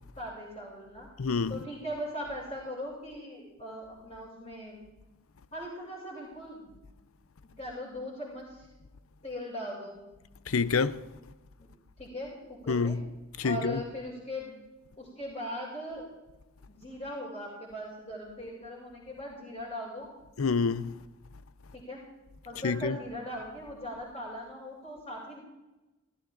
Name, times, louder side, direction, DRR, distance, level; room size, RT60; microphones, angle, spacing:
voice 1, 0.2-1.1 1.5-4.8 5.5-6.7 7.6-8.7 9.2-10.0 11.6-11.7 12.0-13.0 13.4-14.5 15.0-16.1 16.7-20.1 21.7-22.0 22.4-25.4, equal, 35° left, 6.9 m, -39 dB
voice 2, 1.2-1.6 10.5-11.1 12.7-13.0 13.4-13.8 20.4-21.0 22.6-23.0, left 4 dB, 85° left, 0.6 m, -27 dB
18.5 x 16.0 x 3.9 m
head